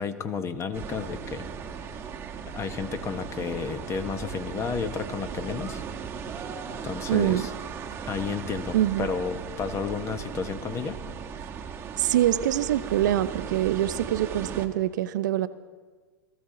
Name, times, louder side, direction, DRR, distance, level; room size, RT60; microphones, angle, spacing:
voice 1, 0.0-1.5 2.5-5.8 6.8-7.5 8.1-11.0, left 5 dB, 25° left, 1.1 m, -32 dB
sound 1, 0.7-14.7, right 7 dB, 25° right, 1.2 m, -37 dB
voice 2, 7.1-7.5 8.7-9.1 12.0-15.5, right 12 dB, 70° right, 0.6 m, -24 dB
18.5 x 13.5 x 3.8 m
hypercardioid pair, 105°, 10 cm